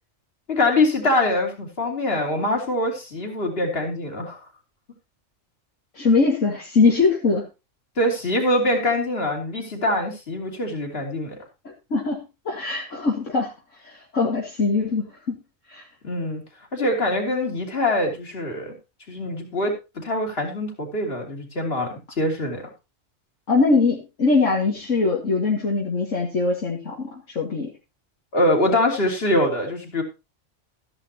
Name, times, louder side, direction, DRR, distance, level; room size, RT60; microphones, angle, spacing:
voice 1, 0.5-4.4 8.0-11.4 16.0-16.4 16.7-18.8 19.1-19.7 20.0-22.6 28.3-30.0, left 1 dB, 45° left, 2 dB, 3.3 m, -23 dB
voice 2, 5.9-7.4 11.6-13.5 13.8-15.3 15.7-15.8 23.5-27.7, left 4 dB, 65° left, -2 dB, 2.3 m, -22 dB
13.5 x 10.5 x 2.9 m, 0.26 s
omnidirectional pair, 1.4 m